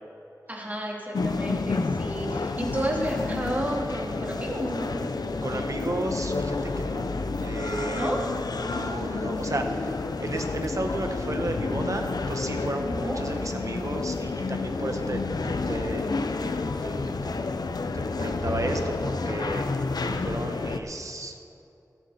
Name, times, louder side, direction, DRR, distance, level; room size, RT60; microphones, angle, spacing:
voice 1, 0.5-5.0 7.9-8.2 12.9-13.3, equal, 25° right, -2 dB, 3.0 m, -31 dB
sound 1, 1.1-20.8, left 3 dB, 90° left, 0.7 m, -30 dB
voice 2, 5.4-7.1 7.4-8.1 8.6-16.1 16.8-17.3 17.9-19.7 20.0-21.4, right 2 dB, 55° right, 4 dB, 1.4 m, -33 dB
14.5 x 14.0 x 4.3 m, 2.8 s
wide cardioid pair, 75°, 7 cm